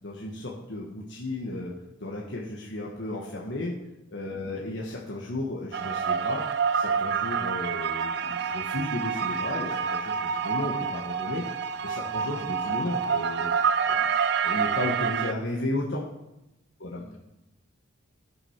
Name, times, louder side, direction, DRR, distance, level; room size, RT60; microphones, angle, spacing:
voice 1, 0.0-1.7 2.0-3.7 4.1-6.4 6.7-11.4 11.8-13.5 13.9-14.1 14.4-16.0 16.8-17.0, left 2 dB, 60° left, -3 dB, 1.2 m, -34 dB
voice 2, 4.4-4.7 12.1-12.4 16.9-17.2, left 1 dB, 90° left, 0 dB, 2.4 m, -48 dB
sound 1, 5.7-15.3, right 6 dB, 55° right, 0.4 m, -28 dB
11.0 x 6.2 x 5.7 m, 0.91 s
head